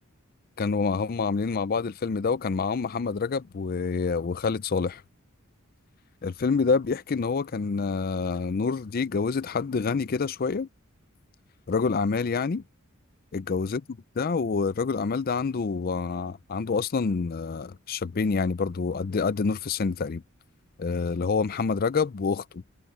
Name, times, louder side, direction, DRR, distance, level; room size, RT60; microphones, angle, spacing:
voice 1, 0.6-5.0 6.2-10.7 11.7-12.6 13.3-13.8 14.2-20.2 20.8-22.6, left 4 dB, 45° left, 0.4 m, -27 dB
head